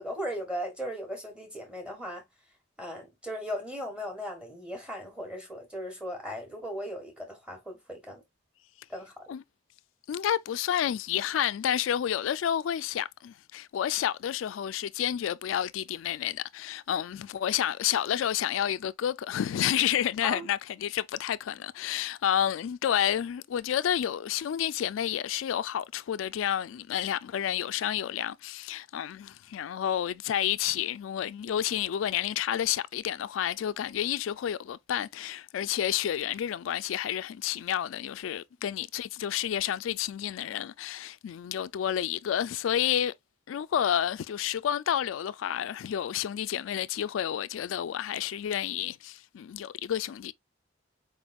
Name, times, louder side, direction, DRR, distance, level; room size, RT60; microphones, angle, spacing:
voice 1, 0.0-2.2 2.8-8.2 8.9-9.1 20.2-20.5, equal, 5° right, 1.4 m, -37 dB
voice 2, 10.1-43.1 43.5-50.3, left 10 dB, 80° left, 0.3 m, -30 dB
4.4 x 3.5 x 2.3 m
head